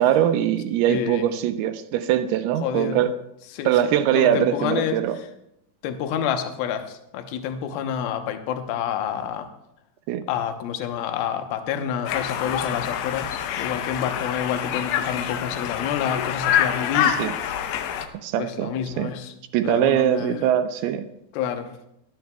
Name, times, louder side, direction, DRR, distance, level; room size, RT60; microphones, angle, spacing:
voice 1, 0.0-3.1 3.6-5.2 10.1-10.2 17.0-17.4 18.2-19.1 19.5-21.1, right 11 dB, 80° right, 9 dB, 2.5 m, -22 dB
voice 2, 0.9-1.3 2.6-3.0 3.5-3.7 4.1-5.0 5.8-9.5 10.3-17.2 18.4-19.3 19.6-20.4 21.3-21.7, left 9 dB, 70° left, 6 dB, 2.6 m, -28 dB
Conversation, 12.1-18.1, left 9 dB, 90° left, 2.9 m, -26 dB
18.0 x 12.5 x 2.3 m, 0.80 s
omnidirectional pair, 4.9 m